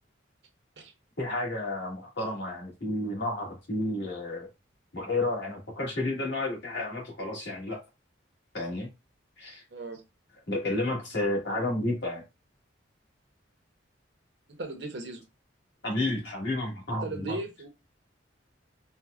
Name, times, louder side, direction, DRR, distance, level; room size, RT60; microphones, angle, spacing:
voice 1, 1.2-4.5 4.9-7.8 8.5-8.9 9.4-9.6 10.5-12.2 15.8-17.4, left 2 dB, 65° left, 1.6 m, -31 dB
voice 2, 9.7-10.0 14.6-15.2 17.0-17.7, right 2 dB, 60° right, 0.7 m, -37 dB
4.4 x 2.1 x 2.4 m
head